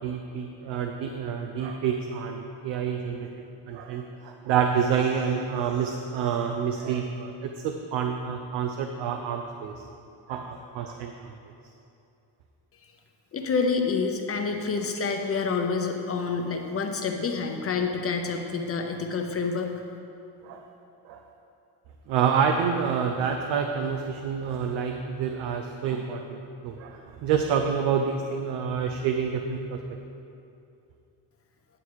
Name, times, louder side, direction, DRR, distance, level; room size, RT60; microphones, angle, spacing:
voice 1, 0.0-3.3 3.7-9.9 10.3-11.4 20.4-20.7 21.0-21.2 22.1-29.8, right 7 dB, 80° right, 4 dB, 0.7 m, -28 dB
voice 2, 13.3-19.7, left 4 dB, 35° left, 4 dB, 0.8 m, -28 dB
9.7 x 7.0 x 4.8 m, 2.7 s
cardioid pair, 125°, 42 cm